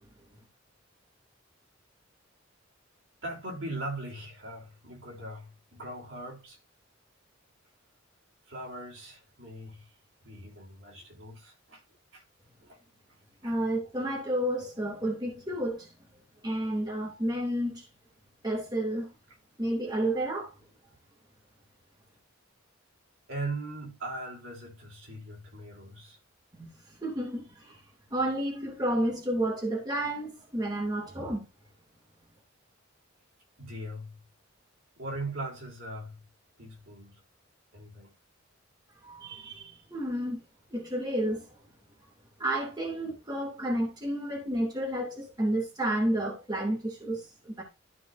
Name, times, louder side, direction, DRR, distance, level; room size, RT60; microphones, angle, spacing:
voice 1, 3.2-6.6 8.5-9.9 10.2-11.8 12.1-12.2 12.6-12.8 13.4-13.5 23.3-26.2 33.6-34.2 35.0-36.2 36.6-37.2 37.7-38.1, right 2 dB, 65° right, 3.5 m, -40 dB
voice 2, 13.4-15.9 16.4-17.8 18.4-19.1 19.6-20.5 26.5-26.7 27.0-27.8 28.1-31.4 39.0-40.4 40.7-41.5 42.4-47.6, right 1 dB, 20° right, 2.6 m, -31 dB
13.0 x 5.6 x 2.6 m
head